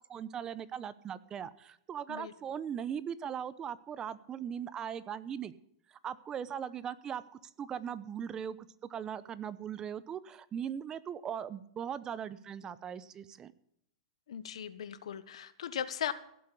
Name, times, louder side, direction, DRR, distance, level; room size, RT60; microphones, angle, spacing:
voice 1, 0.1-5.5 5.9-7.2 7.6-8.6 8.9-13.5, right 8 dB, 20° right, 16 dB, 0.8 m, -39 dB
voice 2, 14.3-16.1, left 9 dB, 80° left, 13 dB, 1.3 m, -38 dB
16.0 x 7.7 x 8.5 m, 0.73 s
hypercardioid pair, 140°, 3 cm